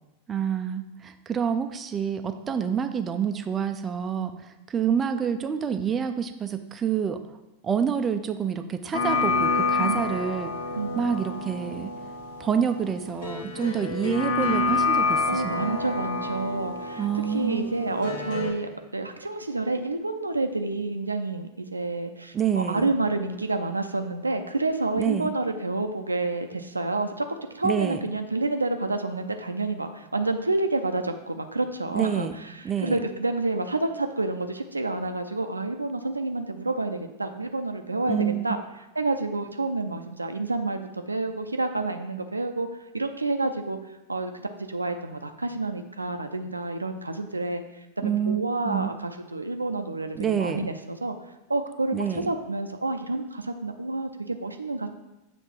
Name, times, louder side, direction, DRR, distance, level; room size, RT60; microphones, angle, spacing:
voice 1, 0.3-7.4 7.6-10.5 11.0-11.9 12.4-15.8 17.0-17.9 22.3-22.9 25.0-25.3 27.6-28.0 31.9-32.4 32.6-33.0 38.1-38.5 48.0-48.4 48.6-48.9 50.1-50.7 51.9-52.3, right 7 dB, 20° right, 8 dB, 0.4 m, -27 dB
sound 1, 8.9-18.5, left 3 dB, 55° left, 1.1 m, -28 dB
voice 2, 9.8-10.1 10.7-11.1 13.5-13.7 15.3-27.3 27.5-38.6 38.9-42.7 42.9-43.8 44.1-51.1 51.5-54.9, right 2 dB, 80° right, 6 dB, 0.5 m, -29 dB
7.2 x 3.3 x 5.9 m, 1.0 s
figure-of-eight pair, 90°, 0 cm